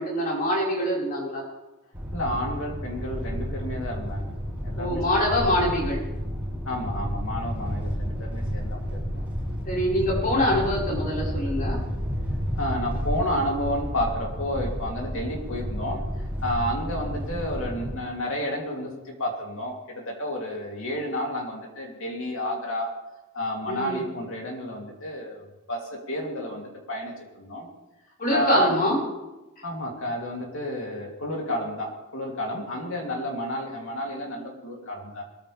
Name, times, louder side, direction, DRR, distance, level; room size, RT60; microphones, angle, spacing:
voice 1, 0.0-1.4 4.7-6.0 9.7-11.8 23.7-24.0 28.2-29.0, left 1 dB, 40° left, -4 dB, 5.3 m, -24 dB
sound 1, 1.9-17.9, equal, 5° right, 4.3 m, -31 dB
voice 2, 2.1-5.4 6.6-9.2 12.6-16.0 16.4-22.9 23.3-27.7 28.3-28.7 29.6-35.2, equal, 65° left, 0 dB, 3.2 m, -31 dB
21.5 x 14.0 x 3.5 m, 1.0 s
head